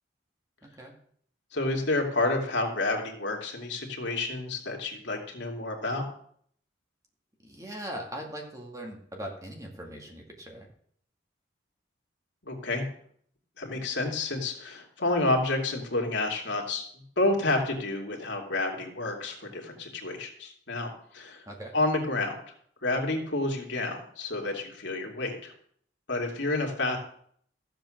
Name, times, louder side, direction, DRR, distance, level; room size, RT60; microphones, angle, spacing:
voice 1, 0.6-0.9 7.4-10.7 21.5-21.7, equal, 15° right, 1 dB, 2.1 m, -40 dB
voice 2, 1.5-6.0 12.4-12.8 13.6-16.8 17.2-21.4 21.7-22.4 22.8-25.5 26.1-27.0, left 2 dB, 70° left, 1 dB, 2.7 m, -29 dB
14.0 x 7.9 x 6.5 m, 0.62 s
head